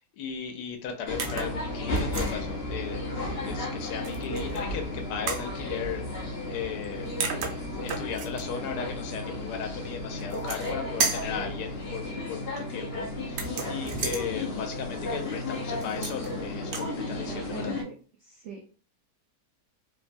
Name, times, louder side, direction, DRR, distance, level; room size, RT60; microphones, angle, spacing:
voice 1, 0.1-3.0 3.4-6.0 6.5-7.1 7.8-17.8, left 7 dB, 80° left, 4 dB, 1.1 m, -36 dB
sound 1, 1.1-17.8, left 1 dB, 65° left, 0.6 m, -33 dB
sound 2, 1.2-1.6 2.0-2.3 4.0-4.6 5.3-5.5 6.8-6.9 7.2-8.4 10.2-10.7 11.0-11.4 13.3-14.2 15.8-16.3 16.6-16.9, right 5 dB, 70° right, 1.0 m, -32 dB
voice 2, 17.0-17.9 18.2-18.7, right 7 dB, 85° right, -1 dB, 0.6 m, -42 dB
3.1 x 2.2 x 2.5 m, 0.38 s
omnidirectional pair, 1.8 m